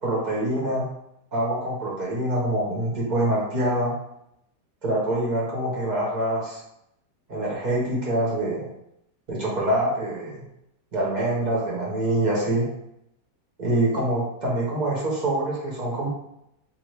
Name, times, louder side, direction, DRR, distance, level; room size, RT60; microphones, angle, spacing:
voice 1, 0.0-0.9 1.3-4.0 4.8-6.6 7.3-8.7 9.3-10.5 10.9-12.7 13.6-16.1, right 1 dB, 35° right, -5 dB, 0.8 m, -25 dB
2.6 x 2.6 x 3.2 m, 0.79 s
omnidirectional pair, 1.8 m